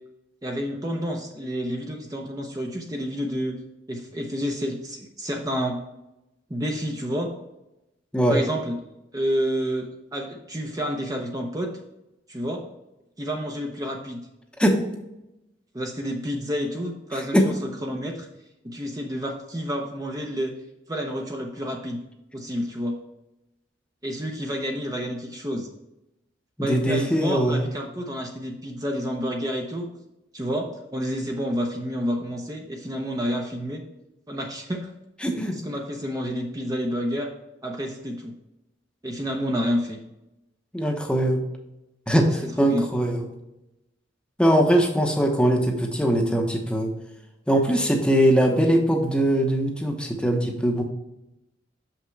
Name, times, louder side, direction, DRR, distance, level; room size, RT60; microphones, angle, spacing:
voice 1, 0.4-3.6 3.9-5.8 6.5-7.3 8.3-8.8 9.1-11.7 12.3-12.6 13.2-14.2 15.7-17.5 17.8-18.3 18.6-20.5 20.9-22.0 22.3-23.0 24.0-25.7 26.6-29.9 30.3-33.8 34.3-34.9 35.5-37.3 37.6-38.3 39.0-40.0 42.6-42.9, equal, 20° right, 1 dB, 0.7 m, -29 dB
voice 2, 26.7-27.7 35.2-35.5 40.7-41.4 42.1-43.3 44.4-46.9 47.5-50.8, equal, 5° left, 2 dB, 0.9 m, -21 dB
6.6 x 5.8 x 3.2 m, 0.91 s
head